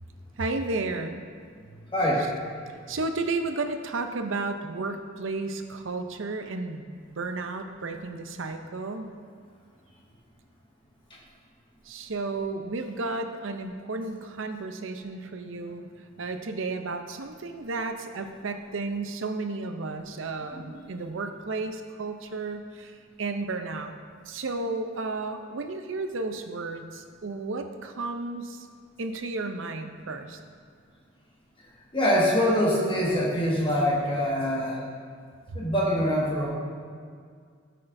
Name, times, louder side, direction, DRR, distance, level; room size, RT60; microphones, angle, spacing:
voice 1, 0.4-1.2 2.9-6.8 7.1-9.1 11.9-15.9 16.2-22.9 23.2-23.9 24.3-28.7 29.0-30.4 35.5-35.6, right 3 dB, 70° right, 6 dB, 0.6 m, -33 dB
voice 2, 1.9-2.3 31.9-34.8 35.5-36.5, equal, 25° left, -5 dB, 1.6 m, -24 dB
12.5 x 6.5 x 2.6 m, 2.1 s
head